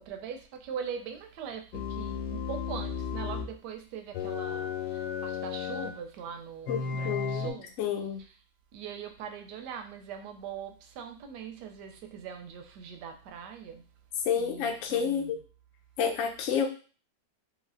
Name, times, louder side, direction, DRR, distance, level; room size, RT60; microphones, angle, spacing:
voice 1, 0.0-7.7 8.2-8.3 8.7-13.8 14.4-15.3, right 7 dB, 80° right, 6 dB, 1.2 m, -41 dB
sound 1, 1.7-3.5 4.1-6.0 6.7-7.5, left 6 dB, 85° left, 1.2 m, -34 dB
voice 2, 7.0-8.2 14.2-15.4 16.0-16.7, left 7 dB, 65° left, 3 dB, 0.8 m, -29 dB
3.1 x 3.1 x 2.4 m, 0.37 s
omnidirectional pair, 1.8 m